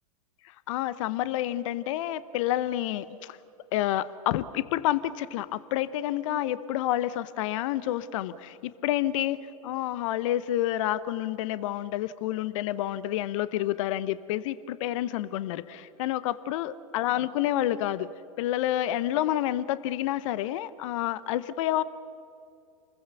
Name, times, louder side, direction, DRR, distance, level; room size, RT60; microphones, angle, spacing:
voice 1, 0.4-3.4 3.7-18.1 18.4-21.8, left 13 dB, 55° left, 16 dB, 0.9 m, -29 dB
28.5 x 21.0 x 6.9 m, 2.5 s
hypercardioid pair, 100°, 20 cm